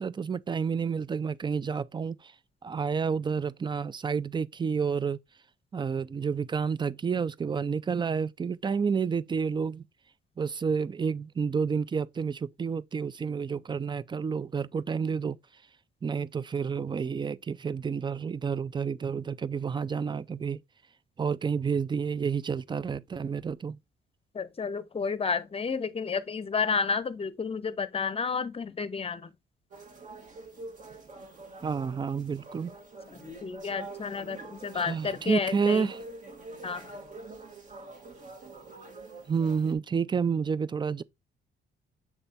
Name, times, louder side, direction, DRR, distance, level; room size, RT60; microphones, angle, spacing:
voice 1, 0.0-2.3 2.6-5.2 5.7-9.8 10.4-15.4 16.0-20.6 21.2-23.8 31.6-32.7 34.7-36.0 39.3-41.0, right 6 dB, 25° right, 0.4 m, -30 dB
voice 2, 24.3-29.3 33.1-35.9 36.6-36.9, left 5 dB, 30° left, 0.7 m, -31 dB
sound 1, 29.7-39.7, right 2 dB, 40° right, 1.8 m, -46 dB
7.2 x 3.3 x 4.1 m
cardioid pair, 90°, 20 cm